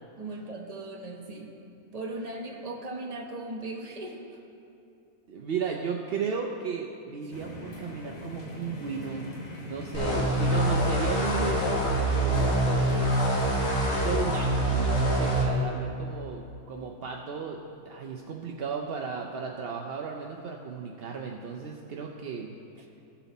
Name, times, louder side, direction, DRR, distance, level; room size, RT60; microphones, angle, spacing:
voice 1, 0.2-1.5 1.9-4.2 13.4-13.5, right 2 dB, 30° right, 1 dB, 0.9 m, -38 dB
voice 2, 5.3-9.2 9.6-13.6 13.9-17.6 17.8-22.5, right 5 dB, 65° right, 1 dB, 0.6 m, -35 dB
sound 1, 7.3-13.3, left 1 dB, 30° left, 0.9 m, -42 dB
sound 2, 9.9-15.5, right 1 dB, 55° left, 1.6 m, -25 dB
16.0 x 5.9 x 4.0 m, 2.6 s
omnidirectional pair, 1.6 m